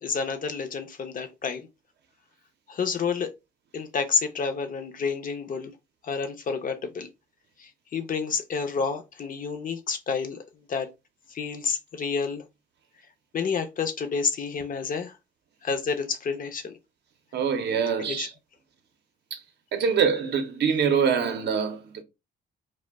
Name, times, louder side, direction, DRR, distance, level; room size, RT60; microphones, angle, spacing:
voice 1, 0.0-1.7 2.7-3.3 3.7-5.7 6.0-7.1 7.6-10.4 10.7-10.9 11.3-12.4 13.3-15.1 15.6-16.8 18.1-18.3, left 5 dB, 45° left, 0.5 m, -29 dB
voice 2, 17.3-18.3 19.3-19.4 19.7-22.0, right 6 dB, 60° right, 0.6 m, -24 dB
2.2 x 2.1 x 3.2 m
cardioid pair, 90°, 20 cm